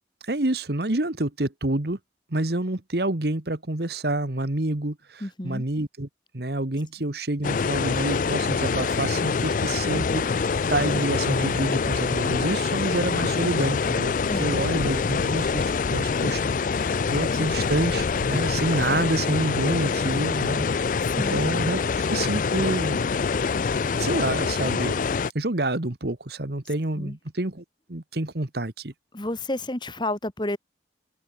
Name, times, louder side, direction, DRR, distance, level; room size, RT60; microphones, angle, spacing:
voice 1, 0.2-2.0 2.3-6.1 6.3-14.1 14.4-20.7 21.3-21.8 22.1-23.6 24.0-24.9 25.3-27.6 27.9-28.9, right 2 dB, 55° right, 1.5 m, -28 dB
voice 2, 5.2-5.6 14.3-14.7 21.0-21.5 26.9-27.2 29.1-30.6, left 1 dB, 25° left, 1.7 m, -31 dB
sound 1, 7.4-25.3, left 5 dB, 45° left, 0.4 m, -25 dB
head